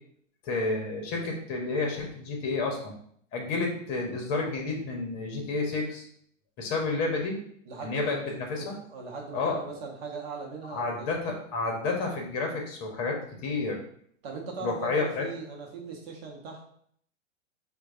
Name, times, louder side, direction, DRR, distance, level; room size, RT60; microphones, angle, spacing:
voice 1, 0.4-2.9 3.3-6.1 6.6-7.4 7.8-8.7 9.3-9.6 10.7-13.8 14.6-15.3, left 3 dB, 35° left, 1 dB, 0.9 m, -30 dB
voice 2, 7.7-11.1 14.2-16.7, right 4 dB, 50° right, -1 dB, 0.8 m, -39 dB
4.4 x 2.3 x 2.6 m, 0.63 s
hypercardioid pair, 125°, 39 cm